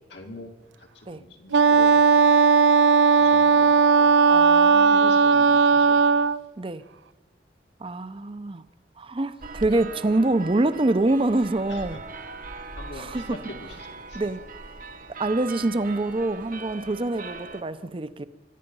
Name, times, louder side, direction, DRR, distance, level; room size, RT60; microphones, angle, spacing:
voice 1, 0.1-0.5 0.8-2.3 3.1-4.3 4.6-6.2 11.7-12.0 12.5-14.2, left 1 dB, 75° left, 3 dB, 2.1 m, -44 dB
Wind instrument woodwind instrument, 1.5-6.4, right 5 dB, 85° right, 0.4 m, -17 dB
voice 2, 4.3-5.0 6.6-6.8 7.8-8.6 9.0-12.0 13.0-13.4 14.1-14.4 15.2-18.2, right 2 dB, 30° right, 13 dB, 0.6 m, -25 dB
sound 1, 9.4-17.6, right 4 dB, 50° right, 0.9 m, -40 dB
23.0 x 11.0 x 5.4 m, 1.3 s
head